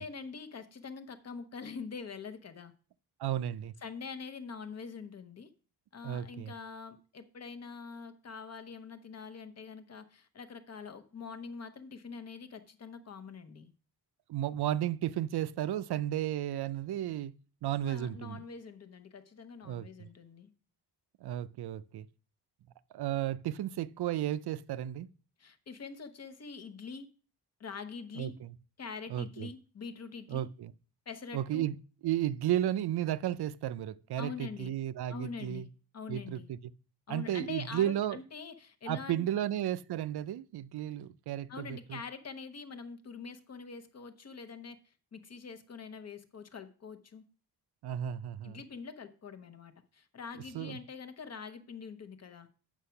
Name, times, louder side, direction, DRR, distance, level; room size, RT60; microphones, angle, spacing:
voice 1, 0.0-2.7 3.8-5.5 5.9-13.7 17.8-20.5 25.4-27.1 27.6-28.4 28.8-30.5 31.1-31.7 34.2-34.7 35.1-35.7 35.9-36.5 37.1-39.2 41.5-47.2 48.4-52.5, left 5 dB, 40° left, 0.9 m, -44 dB
voice 2, 3.2-3.7 6.0-6.5 14.3-17.3 17.6-18.4 19.6-20.1 21.2-22.1 22.9-25.1 28.2-28.5 29.1-29.5 30.3-30.7 31.3-31.8 32.0-35.7 36.1-36.6 37.1-38.2 38.9-42.0 47.8-48.6 50.5-50.8, right 12 dB, 75° right, 0.5 m, -33 dB
8.1 x 6.1 x 5.7 m
wide cardioid pair, 170°, 39 cm